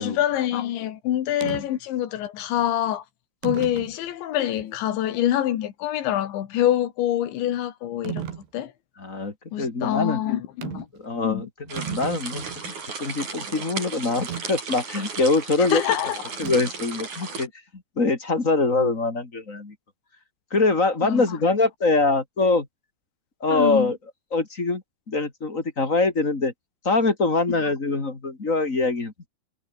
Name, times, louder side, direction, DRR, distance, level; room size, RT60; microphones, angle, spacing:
voice 1, 0.0-3.0 3.4-8.2 8.5-8.7 9.5-10.9 11.2-11.5 15.6-16.2 21.0-21.2 23.5-23.9, left 12 dB, 85° left, 4.3 m, -25 dB
sound 1, 1.4-1.7 2.6-2.7 3.4-4.0 4.6-4.7 8.1-8.5 10.6-11.0 11.3-11.4 11.6-12.7 14.3-14.5 16.4-16.8, right 9 dB, 75° right, 4.9 m, -34 dB
voice 2, 9.0-10.2 11.0-15.8 16.4-17.5 18.0-19.7 20.5-22.7 23.4-24.0 24.3-24.8 25.1-26.5 26.8-29.3, left 3 dB, 20° left, 2.4 m, -24 dB
sound 2, 11.7-17.5, right 5 dB, 45° right, 6.2 m, -35 dB
omnidirectional pair, 5.1 m